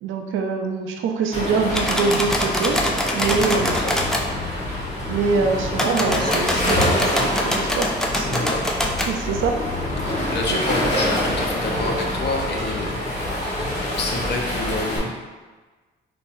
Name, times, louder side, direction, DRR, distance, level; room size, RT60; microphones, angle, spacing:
voice 1, 0.0-2.8 3.1-3.8 5.1-8.5 9.1-9.5 10.5-10.8, right 4 dB, 80° right, 3 dB, 0.5 m, -24 dB
Waves surf, 1.3-15.0, left 1 dB, 35° left, 1.1 m, -26 dB
sound 1, 1.7-4.2 5.7-9.1, equal, 5° left, 0.4 m, -24 dB
voice 2, 3.2-3.9 8.2-8.6 10.0-13.2 13.9-15.2, left 2 dB, 60° left, 1 dB, 0.6 m, -28 dB
3.8 x 2.7 x 2.5 m, 1.3 s
cardioid pair, 90°, 20 cm